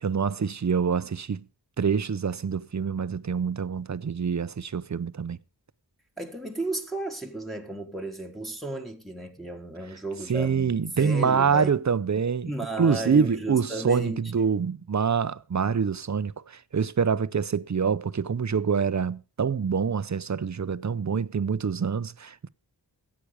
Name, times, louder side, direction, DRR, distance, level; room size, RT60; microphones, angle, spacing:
voice 1, 0.0-1.4 1.8-5.4 10.3-12.5 12.8-22.5, right 6 dB, 40° right, 0.6 m, -26 dB
voice 2, 6.2-11.7 12.4-14.3, right 1 dB, ahead, 1.6 m, -34 dB
13.5 x 8.6 x 5.0 m
wide cardioid pair, 50°, 42 cm